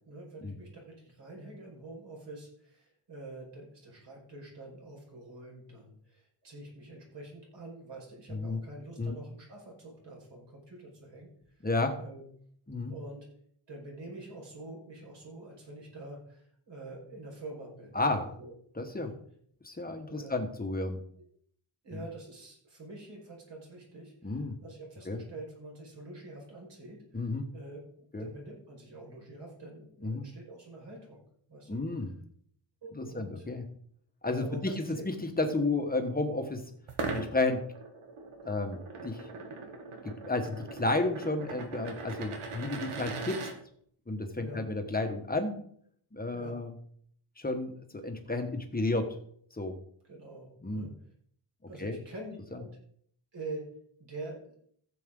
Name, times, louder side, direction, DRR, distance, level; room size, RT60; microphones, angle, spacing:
voice 1, 0.0-11.3 11.9-12.2 12.7-13.3 13.7-18.5 19.0-19.2 20.1-20.4 21.8-27.8 28.2-31.2 31.5-31.8 32.8-33.5 34.4-35.1 44.4-44.6 46.3-46.6 50.0-50.9 51.7-52.8 53.3-53.7 54.0-54.6, right 2 dB, 55° right, -2 dB, 5.2 m, -46 dB
voice 2, 11.6-12.0 12.7-12.9 17.9-18.3 18.8-19.1 19.6-21.0 21.9-22.0 24.2-24.5 25.1-25.2 27.1-27.4 28.1-28.3 30.0-30.2 31.7-32.1 32.9-33.6 34.2-36.6 37.1-37.6 38.4-38.8 39.0-39.2 40.3-43.4 44.1-45.6 46.1-46.7 47.4-49.1 49.6-49.8 50.6-50.9 51.8-52.0, left 2 dB, 20° left, 5 dB, 1.5 m, -32 dB
sound 1, 36.9-43.5, right 4 dB, 80° right, 1.9 m, -40 dB
15.0 x 7.6 x 3.8 m, 0.63 s
wide cardioid pair, 135°, 49 cm